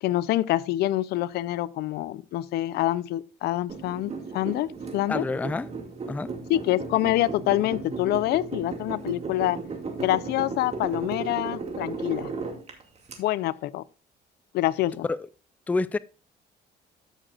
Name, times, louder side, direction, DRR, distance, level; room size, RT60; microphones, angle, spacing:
voice 1, 0.0-5.3 6.5-9.6 10.0-12.3 13.2-13.8 14.5-15.1, left 15 dB, 75° left, 0.5 m, -26 dB
sound 1, 3.7-13.2, right 4 dB, 40° right, 2.3 m, -35 dB
voice 2, 5.1-5.7 6.1-6.3 15.1-15.2 15.7-16.0, left 3 dB, 10° left, 0.3 m, -27 dB
13.5 x 6.6 x 2.4 m
cardioid pair, 110°, 17 cm